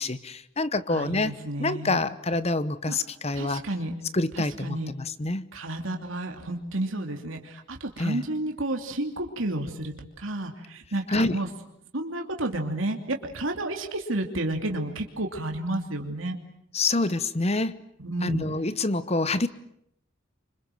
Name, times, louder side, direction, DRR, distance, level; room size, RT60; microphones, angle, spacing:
voice 1, 0.0-3.6 4.1-5.5 8.0-8.2 11.1-11.4 16.7-17.8 18.2-19.5, left 2 dB, 30° left, 15 dB, 1.0 m, -27 dB
voice 2, 0.9-2.0 2.9-3.0 3.3-3.9 4.3-4.9 5.5-11.5 11.9-16.4 18.0-18.4, right 1 dB, 80° right, 3 dB, 2.9 m, -31 dB
26.0 x 26.0 x 7.8 m, 0.73 s
head